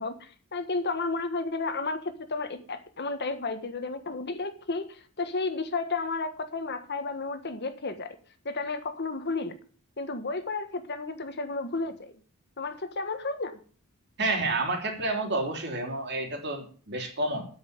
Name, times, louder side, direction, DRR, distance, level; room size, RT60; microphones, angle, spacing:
voice 1, 0.0-8.2 8.4-9.5 10.0-12.1 12.6-13.6, left 3 dB, 50° left, 9 dB, 1.5 m, -32 dB
voice 2, 14.2-17.5, right 2 dB, 50° right, 3 dB, 3.6 m, -29 dB
9.3 x 8.0 x 9.1 m, 0.41 s
head